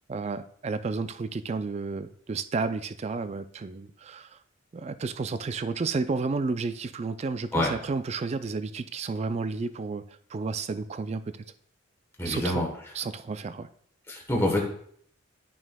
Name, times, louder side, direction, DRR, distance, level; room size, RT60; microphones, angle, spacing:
voice 1, 0.1-4.4 4.7-10.1 10.3-11.4 12.3-12.6 13.0-13.7, right 4 dB, 30° right, 12 dB, 0.3 m, -31 dB
voice 2, 12.2-12.9 14.1-14.6, left 1 dB, 10° left, -1 dB, 1.1 m, -27 dB
11.0 x 6.1 x 2.3 m, 0.62 s
head